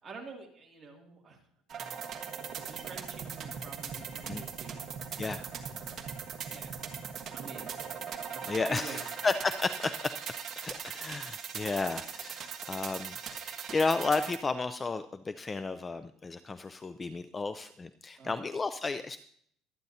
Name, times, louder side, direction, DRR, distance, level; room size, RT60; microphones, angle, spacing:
voice 1, 0.0-1.4 1.7-2.0 2.5-4.8 5.6-6.1 6.5-6.8 7.3-7.7 8.3-9.0 18.2-18.4, right 4 dB, 25° right, 0 dB, 2.4 m, -48 dB
sound 1, 1.7-14.4, right 7 dB, 40° right, 1.4 m, -40 dB
voice 2, 8.5-10.0 10.6-19.2, left 3 dB, 20° left, 11 dB, 0.4 m, -33 dB
23.5 x 9.2 x 2.8 m, 0.63 s
cardioid pair, 140°, 0 cm